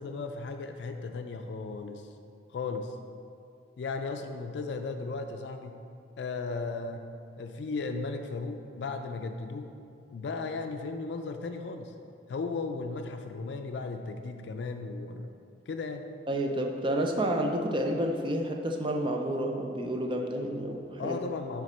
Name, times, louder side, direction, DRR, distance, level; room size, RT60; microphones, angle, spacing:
voice 1, 0.0-2.1 2.5-3.0 3.8-5.8 6.2-7.1 7.4-9.7 10.1-11.9 12.3-15.3 15.7-16.1 21.0-21.6, left 4 dB, 75° left, 6 dB, 0.4 m, -36 dB
voice 2, 16.3-21.2, right 1 dB, 30° right, 2 dB, 0.5 m, -30 dB
10.0 x 3.6 x 4.3 m, 2.5 s
head